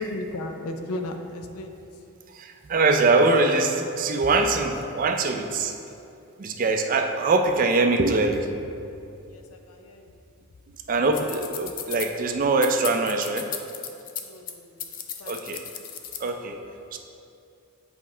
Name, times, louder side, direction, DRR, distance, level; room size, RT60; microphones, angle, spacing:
voice 1, 0.0-1.8 9.3-10.1 14.2-14.9 15.2-15.4, left 2 dB, 90° left, 5 dB, 0.5 m, -35 dB
voice 2, 2.3-5.7 6.4-8.5 10.9-13.5 15.2-15.6 16.2-16.6 16.9-17.0, right 3 dB, 40° right, 5 dB, 0.4 m, -23 dB
sound 1, 11.1-12.1 12.6-14.5 14.8-16.3, left 9 dB, 40° left, 0.3 m, -35 dB
7.4 x 4.6 x 3.2 m, 2.6 s
head